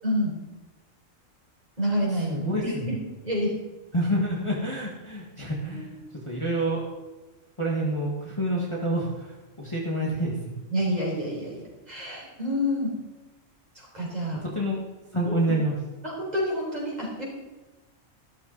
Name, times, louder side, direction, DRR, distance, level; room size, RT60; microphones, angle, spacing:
voice 1, 0.0-0.3 1.8-2.9 3.2-3.5 5.7-5.9 10.7-12.9 13.7-14.4 15.2-15.6 16.0-17.3, equal, 30° right, -3 dB, 4.4 m, -28 dB
voice 2, 2.3-2.9 3.9-5.9 6.2-6.9 7.6-10.4 14.4-14.8 15.1-15.7, right 1 dB, 20° left, -4 dB, 1.9 m, -27 dB
13.0 x 13.0 x 4.1 m, 1.2 s
omnidirectional pair, 1.4 m